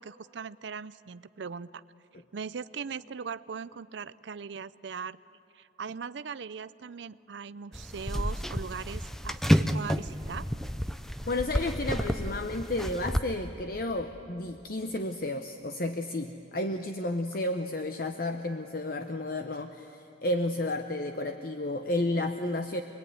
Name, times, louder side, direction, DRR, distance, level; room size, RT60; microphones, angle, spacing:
voice 1, 0.0-1.8 2.3-5.2 5.5-10.5, right 6 dB, 75° right, 16 dB, 0.5 m, -39 dB
sound 1, 7.7-13.2, equal, ahead, 0.6 m, -30 dB
voice 2, 11.3-22.8, left 2 dB, 50° left, 7 dB, 0.8 m, -32 dB
26.0 x 21.5 x 9.4 m, 2.8 s
head